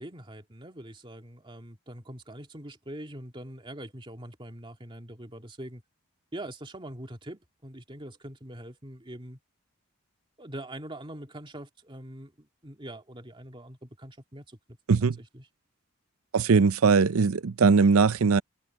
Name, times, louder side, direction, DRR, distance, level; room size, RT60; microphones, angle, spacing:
voice 1, 0.0-5.8 6.3-9.4 10.4-14.8 15.2-15.5, right 1 dB, 25° right, 2.5 m, -43 dB
voice 2, 16.3-18.4, right 5 dB, 85° right, 0.6 m, -20 dB
head